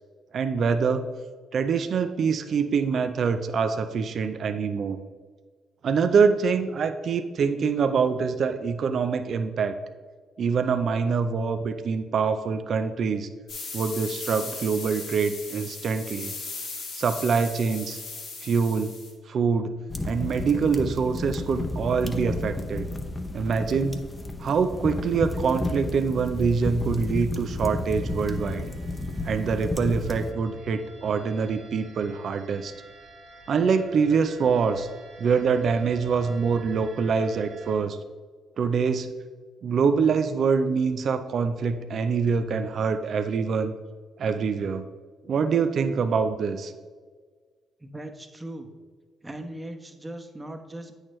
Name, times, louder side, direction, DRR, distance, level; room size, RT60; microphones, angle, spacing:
voice 1, 0.3-1.1 1.5-5.0 5.8-9.8 10.4-13.3 13.7-16.3 16.9-18.0 18.4-18.9 19.3-19.8 20.1-22.9 23.3-24.1 24.4-28.6 29.2-32.7 33.5-34.9 35.2-38.0 38.6-39.1 39.6-43.7 44.2-44.8 45.3-46.7, right 5 dB, 60° right, 8 dB, 0.5 m, -25 dB
sound 1, 13.5-19.1, left 4 dB, 75° left, 2.2 m, -37 dB
sound 2, 19.9-30.3, left 2 dB, 20° left, 0.9 m, -32 dB
sound 3, 27.9-37.8, right 2 dB, 80° right, 1.6 m, -48 dB
voice 2, 47.8-48.7 49.2-50.9, right 1 dB, 20° right, 5 dB, 1.0 m, -39 dB
8.6 x 6.4 x 3.1 m, 1.5 s
hypercardioid pair, 55°, 0 cm